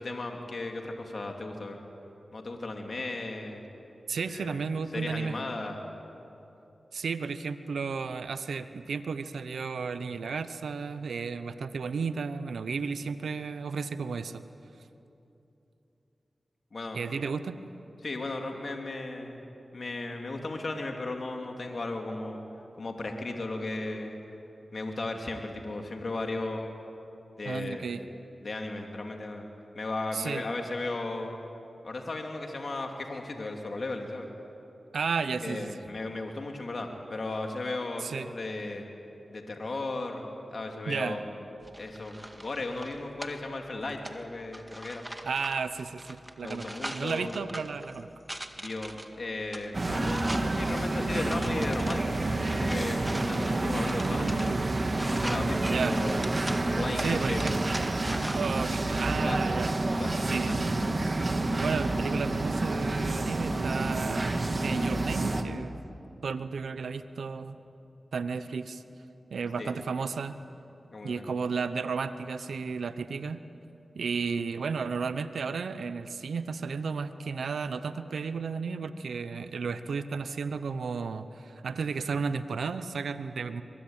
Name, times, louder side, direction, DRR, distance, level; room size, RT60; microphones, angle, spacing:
voice 1, 0.0-1.8 2.3-3.6 4.3-4.6 4.9-5.8 16.7-17.0 18.0-19.4 19.7-22.4 22.8-24.1 24.7-26.7 27.4-27.9 28.4-29.4 29.7-31.4 31.8-34.3 35.4-38.8 39.3-41.4 41.8-45.0 46.4-47.4 48.6-54.7 55.0-56.2 56.7-57.6 59.0-59.5 60.0-60.7 69.6-69.8 70.9-71.3, left 2 dB, 60° left, 2 dB, 2.8 m, -36 dB
voice 2, 4.1-5.4 6.9-14.4 16.9-17.6 27.4-28.0 30.1-30.4 34.9-35.7 38.0-38.3 40.9-41.2 45.2-46.6 46.9-48.1 53.8-54.4 55.6-56.0 57.0-57.6 58.3-59.8 60.3-60.7 61.6-64.4 64.6-65.8 66.2-67.6 68.1-68.8 69.3-70.4 71.0-73.4 73.9-83.6, right 5 dB, 85° right, 11 dB, 0.9 m, -33 dB
sound 1, 41.6-58.6, right 1 dB, 15° right, 2.1 m, -42 dB
sound 2, 49.7-65.4, right 2 dB, 45° right, 1.9 m, -29 dB
23.5 x 22.0 x 9.0 m, 2.9 s
cardioid pair, 40°, 0 cm